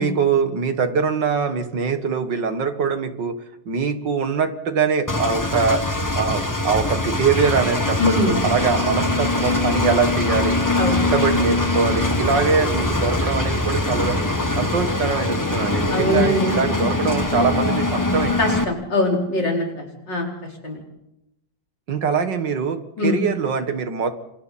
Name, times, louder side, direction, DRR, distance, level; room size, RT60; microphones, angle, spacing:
voice 1, 0.0-3.4 3.7-5.8 6.2-10.6 10.9-14.2 14.6-18.3 21.9-24.1, right 5 dB, 70° right, 8 dB, 2.3 m, -23 dB
Engine, 5.1-18.6, left 2 dB, 10° left, 1.2 m, -23 dB
sound 1, 7.4-14.5, right 2 dB, 40° right, 3.5 m, -31 dB
voice 2, 8.0-8.4 10.8-11.0 15.9-16.5 18.4-20.3 20.6-20.8 23.0-23.2, left 2 dB, 70° left, 0 dB, 5.3 m, -22 dB
28.5 x 26.5 x 4.3 m, 0.86 s
omnidirectional pair, 2.0 m